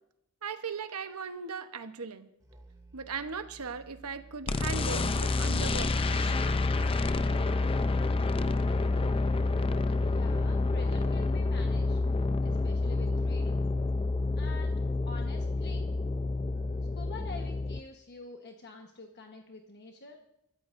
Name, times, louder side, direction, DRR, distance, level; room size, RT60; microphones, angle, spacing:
voice 1, 0.4-2.3 2.9-6.4, right 5 dB, 85° right, 9 dB, 1.0 m, -38 dB
Musical instrument, 2.4-17.4, right 2 dB, 15° right, 2.5 m, -54 dB
sound 1, 4.5-17.8, left 3 dB, 25° left, 0.5 m, -28 dB
voice 2, 10.1-12.0 12.4-13.6 14.4-15.9 16.9-20.2, left 3 dB, 50° left, 2 dB, 1.2 m, -47 dB
26.0 x 13.5 x 2.6 m, 0.83 s
head